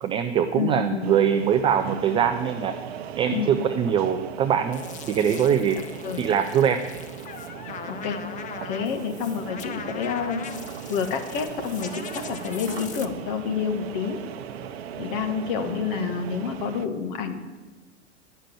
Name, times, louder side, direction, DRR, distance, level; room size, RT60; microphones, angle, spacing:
voice 1, 0.0-2.7 3.2-5.8 6.2-6.8, right 8 dB, 15° right, 8 dB, 0.3 m, -23 dB
voice 2, 0.5-1.1 3.3-3.5 6.0-6.3 7.9-8.2 8.6-10.5 10.9-14.2 15.0-17.4, left 6 dB, 50° left, 6 dB, 1.7 m, -28 dB
sound 1, 1.0-16.9, right 9 dB, 60° right, 0.8 m, -38 dB
sound 2, 4.7-13.1, left 7 dB, 20° left, 0.8 m, -41 dB
11.0 x 6.5 x 9.1 m, 1.3 s
figure-of-eight pair, 100°, 36 cm